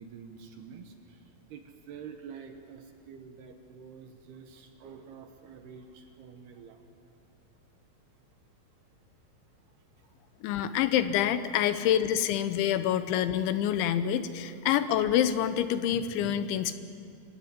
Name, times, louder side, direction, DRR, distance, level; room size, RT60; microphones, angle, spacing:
voice 1, 0.0-6.9 9.7-10.4 11.7-11.8, right 6 dB, 70° right, 5 dB, 2.7 m, -48 dB
voice 2, 10.4-16.7, left 10 dB, 80° left, 11 dB, 3.1 m, -27 dB
26.0 x 16.5 x 9.1 m, 2.5 s
omnidirectional pair, 5.5 m